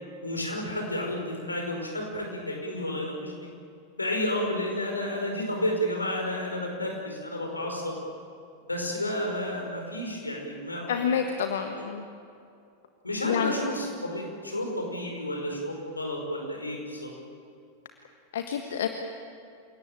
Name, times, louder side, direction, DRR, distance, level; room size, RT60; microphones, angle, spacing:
voice 1, 0.2-3.3 4.0-8.0 8.7-11.2 13.0-17.1, left 1 dB, 80° left, 1 dB, 5.1 m, -31 dB
voice 2, 10.9-12.0 13.2-13.5 18.3-18.9, left 8 dB, 60° left, 6 dB, 1.4 m, -28 dB
28.5 x 18.0 x 9.0 m, 2.5 s
figure-of-eight pair, 90°, 0 cm